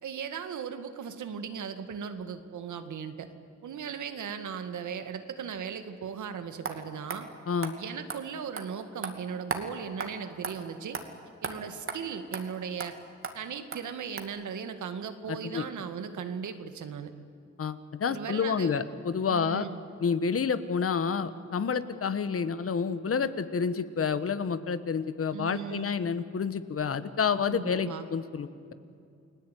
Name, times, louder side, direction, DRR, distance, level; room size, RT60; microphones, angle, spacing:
voice 1, 0.0-3.3 3.6-7.3 7.8-11.0 11.4-13.0 13.3-17.1 18.1-18.8 19.3-19.8 25.3-25.9 27.5-28.0, right 7 dB, 90° right, 9 dB, 2.0 m, -37 dB
sound 1, 6.6-6.8 7.1-7.2 7.6-7.7 8.1-8.2 8.6-8.7 9.0-9.1 9.5-9.6 10.0-10.1 10.4-10.5 10.9-11.0 11.4-11.5 11.9-12.0 12.3-12.4 12.8-12.9 13.2-13.3 13.7-13.8 14.2-14.3, right 5 dB, 45° right, 2.5 m, -34 dB
voice 2, 15.3-15.6 17.6-19.7 20.0-28.7, left 6 dB, 50° left, 13 dB, 1.4 m, -29 dB
30.0 x 20.5 x 9.3 m, 2.4 s
wide cardioid pair, 120°, 29 cm